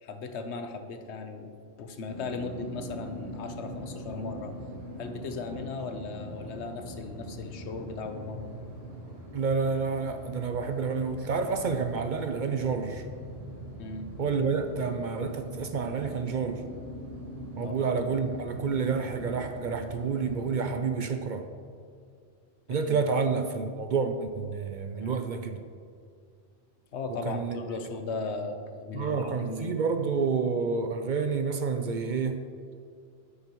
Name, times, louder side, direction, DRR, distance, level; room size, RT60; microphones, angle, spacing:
voice 1, 0.0-4.5 5.0-8.5 13.8-14.1 17.6-17.9 22.7-23.0 25.0-25.2 26.9-29.8, left 4 dB, 85° left, 7 dB, 1.1 m, -37 dB
sound 1, 2.1-20.7, equal, 75° right, 1.9 m, -42 dB
voice 2, 9.3-13.1 14.2-16.6 17.6-21.5 22.7-25.6 27.2-27.6 28.9-32.4, right 5 dB, 55° right, 7 dB, 0.6 m, -29 dB
9.4 x 9.3 x 3.0 m, 2.2 s
omnidirectional pair, 1.1 m